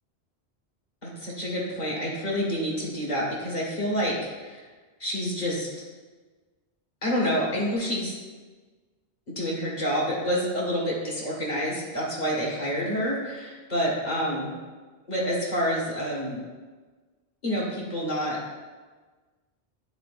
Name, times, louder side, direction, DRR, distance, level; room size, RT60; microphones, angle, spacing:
voice 1, 1.0-4.6 5.0-5.7 7.0-8.1 9.4-14.5 15.1-16.4 17.4-18.4, equal, 40° left, -4 dB, 1.7 m, -28 dB
9.1 x 4.6 x 2.5 m, 1.4 s
omnidirectional pair, 1.1 m